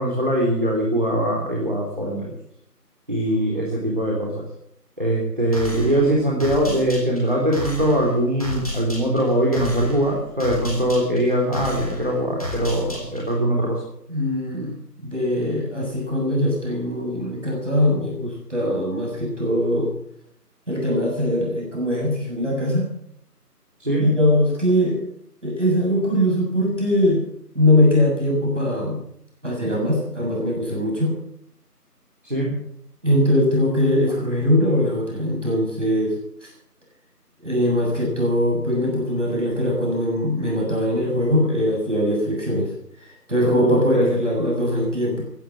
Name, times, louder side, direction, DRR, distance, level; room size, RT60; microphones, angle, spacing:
voice 1, 0.0-2.3 3.1-4.4 5.0-13.8 23.8-24.1 32.2-32.5 43.4-44.1, right 1 dB, 30° right, -2 dB, 3.4 m, -22 dB
sound 1, 5.5-13.4, left 1 dB, 20° left, 3.7 m, -32 dB
voice 2, 14.1-14.7 15.0-19.9 20.7-22.9 24.0-25.0 25.4-27.3 27.5-29.0 29.4-31.2 33.0-36.5 37.4-42.7 43.0-45.2, left 1 dB, 45° right, -2 dB, 7.1 m, -21 dB
15.5 x 12.5 x 7.4 m, 0.71 s
figure-of-eight pair, 180°, 48 cm